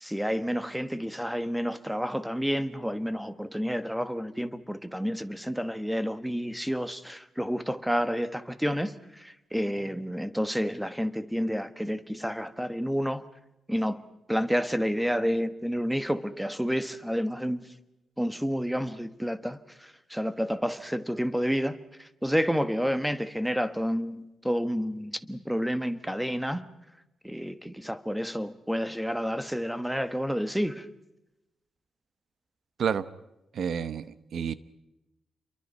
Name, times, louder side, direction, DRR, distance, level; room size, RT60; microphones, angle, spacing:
voice 1, 0.0-13.2 13.7-14.0 14.3-17.7 18.2-26.7 27.2-30.9, equal, ahead, 1.3 m, -30 dB
voice 2, 33.5-34.5, right 7 dB, 65° right, 1.0 m, -29 dB
29.5 x 23.5 x 5.5 m
cardioid pair, 125°, 0 cm